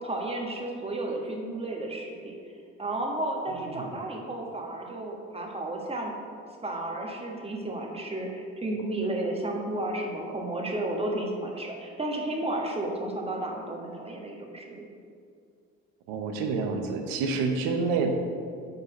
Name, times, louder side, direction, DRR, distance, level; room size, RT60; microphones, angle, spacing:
voice 1, 0.0-2.3 2.8-6.1 6.6-14.9, right 1 dB, 15° right, 0 dB, 1.4 m, -32 dB
voice 2, 3.5-3.9 16.1-18.1, right 4 dB, 75° right, 4 dB, 0.9 m, -28 dB
4.9 x 4.6 x 5.9 m, 2.3 s
hypercardioid pair, 60°, 35 cm